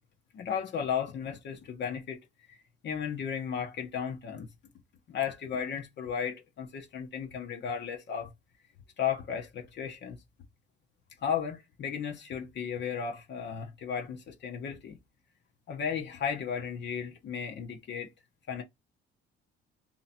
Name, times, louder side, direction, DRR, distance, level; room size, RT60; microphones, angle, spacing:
voice 1, 0.3-2.2 2.5-4.5 5.1-8.3 9.0-10.2 11.2-15.0 15.7-18.1 18.5-18.6, left 7 dB, 55° left, 1.0 m, -34 dB
3.1 x 2.9 x 4.2 m
cardioid pair, 95°, 21 cm